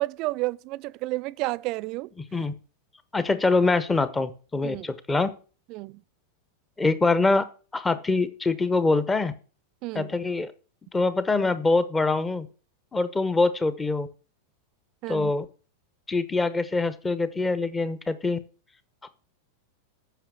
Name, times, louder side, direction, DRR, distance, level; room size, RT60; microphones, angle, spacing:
voice 1, 0.0-2.1 4.6-4.9 5.7-6.0 9.8-10.1 15.0-15.3, right 20 dB, 40° right, 0.4 m, -31 dB
voice 2, 3.1-5.3 6.8-7.4 7.7-9.3 9.9-10.5 10.9-12.5 12.9-14.1 15.1-15.5 16.1-18.4 19.0-19.1, left 3 dB, 10° left, 0.9 m, -24 dB
9.2 x 6.4 x 6.3 m
figure-of-eight pair, 90°, 0 cm